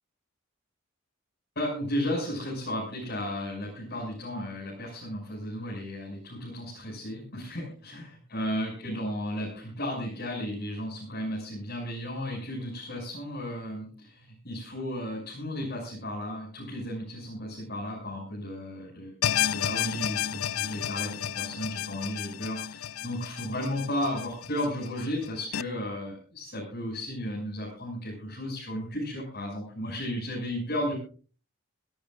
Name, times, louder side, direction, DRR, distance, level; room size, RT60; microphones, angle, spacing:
voice 1, 1.5-19.1 19.4-30.9, left 1 dB, 50° left, -4 dB, 6.6 m, -34 dB
sound 1, 19.2-25.6, left 10 dB, 90° left, 0.5 m, -32 dB
26.0 x 13.5 x 2.5 m, 0.39 s
head